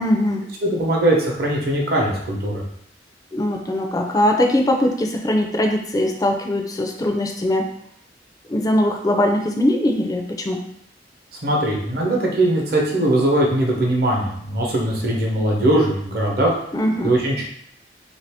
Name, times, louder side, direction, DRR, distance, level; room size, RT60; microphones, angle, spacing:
voice 1, 0.0-0.5 3.3-7.7 8.5-10.6 16.7-17.1, left 1 dB, 20° left, 3 dB, 0.3 m, -21 dB
voice 2, 0.6-2.6 11.4-16.6 17.0-17.4, right 1 dB, 60° right, -2 dB, 0.8 m, -20 dB
2.9 x 2.6 x 3.4 m, 0.70 s
head